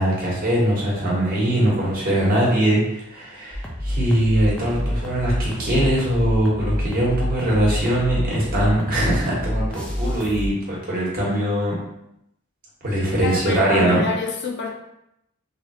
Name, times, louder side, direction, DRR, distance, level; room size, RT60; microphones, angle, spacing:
voice 1, 0.0-11.8 12.8-14.0, right 1 dB, 45° right, -5 dB, 1.2 m, -21 dB
sound 1, 3.5-10.5, equal, 5° left, 0.5 m, -27 dB
voice 2, 13.2-14.7, left 3 dB, 55° left, 1 dB, 0.6 m, -28 dB
3.3 x 2.4 x 2.9 m, 0.81 s
head